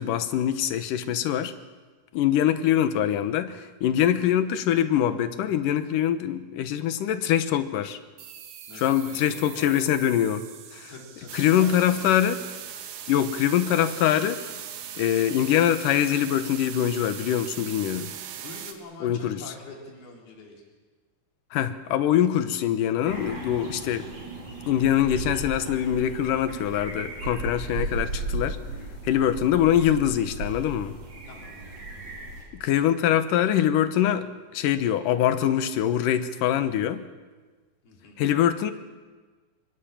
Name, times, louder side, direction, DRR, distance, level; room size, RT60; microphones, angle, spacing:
voice 1, 0.0-1.5 2.1-8.0 8.7-10.4 10.7-10.9 11.3-12.4 13.1-14.4 15.0-18.1 19.0-19.4 21.5-24.1 24.7-28.6 29.0-31.0 32.5-34.3 34.5-37.0 38.2-38.7, left 10 dB, 70° left, 10 dB, 2.5 m, -23 dB
sound 1, 8.2-13.3, right 9 dB, 70° right, 1.5 m, -47 dB
voice 2, 8.7-9.8 10.9-12.1 18.3-20.6 31.3-31.6 37.8-38.3, left 3 dB, 85° left, -1 dB, 5.9 m, -45 dB
sound 2, 11.3-18.7, right 9 dB, 85° right, 3.5 m, -39 dB
sound 3, 23.0-32.4, right 2 dB, 50° right, 6.5 m, -36 dB
25.5 x 23.0 x 7.3 m, 1.4 s
omnidirectional pair, 4.4 m